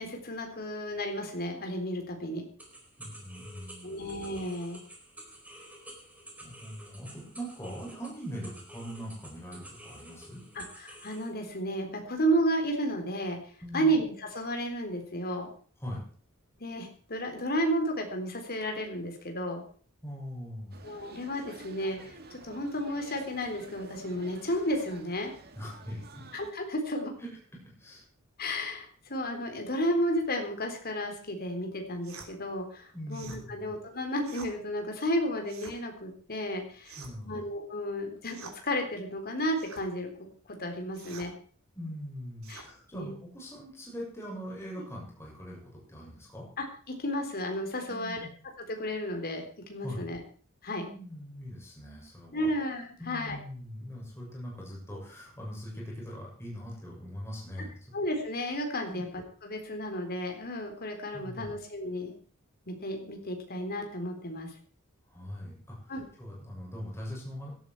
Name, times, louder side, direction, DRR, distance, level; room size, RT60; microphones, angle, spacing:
voice 1, 0.0-2.4 3.8-4.8 10.6-13.4 13.7-15.5 16.6-19.6 20.8-25.3 26.3-27.1 28.4-37.0 37.2-38.4 38.6-40.1 40.5-41.3 42.5-42.6 42.9-43.1 46.6-48.2 48.6-50.2 50.6-50.9 52.3-53.4 57.9-59.1 59.4-62.1 62.7-64.5 65.9-66.1, equal, 50° left, 4 dB, 3.7 m, -32 dB
sound 1, 2.6-11.3, right 1 dB, 5° right, 4.0 m, -50 dB
voice 2, 3.0-4.1 6.4-10.4 13.6-14.0 15.8-16.0 20.0-20.8 25.5-26.2 27.2-27.3 27.8-28.0 32.9-33.7 37.0-37.4 41.7-46.5 47.9-48.3 49.8-50.0 50.7-52.5 53.0-57.7 58.9-59.0 61.1-61.5 65.1-67.5, equal, 15° left, -3 dB, 6.9 m, -41 dB
sound 2, 20.7-26.5, right 3 dB, 50° right, 1.9 m, -50 dB
sound 3, 32.0-32.3 33.1-33.4 34.2-34.5 35.4-35.8 36.8-37.3 38.3-38.6 39.6-39.9 40.9-41.3 42.4-42.7, right 4 dB, 80° right, 3.2 m, -47 dB
16.5 x 12.5 x 4.7 m, 0.43 s
head